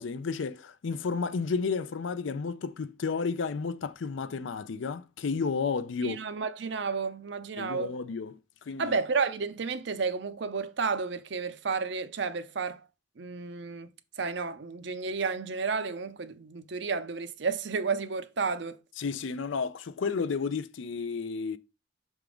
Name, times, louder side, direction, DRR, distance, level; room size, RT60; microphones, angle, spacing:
voice 1, 0.0-6.2 7.6-8.4 8.7-9.0 19.0-21.6, left 5 dB, 75° left, 0.5 m, -32 dB
voice 2, 6.0-8.0 8.8-12.8 13.2-13.9 14.2-18.8, right 4 dB, 60° right, 0.6 m, -31 dB
5.8 x 3.6 x 4.9 m
head